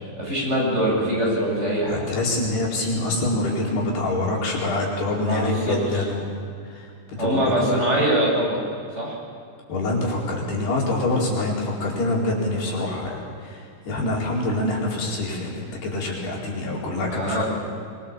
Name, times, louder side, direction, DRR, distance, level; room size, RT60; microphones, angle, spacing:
voice 1, 0.2-2.0 5.2-6.1 7.2-8.6 9.0-9.2 17.1-17.4, right 1 dB, 15° right, -4 dB, 8.2 m, -23 dB
voice 2, 1.9-6.3 6.7-6.9 7.2-7.7 9.7-17.4, left 2 dB, 80° left, -4 dB, 6.5 m, -25 dB
26.0 x 23.5 x 7.4 m, 2.3 s
omnidirectional pair, 4.6 m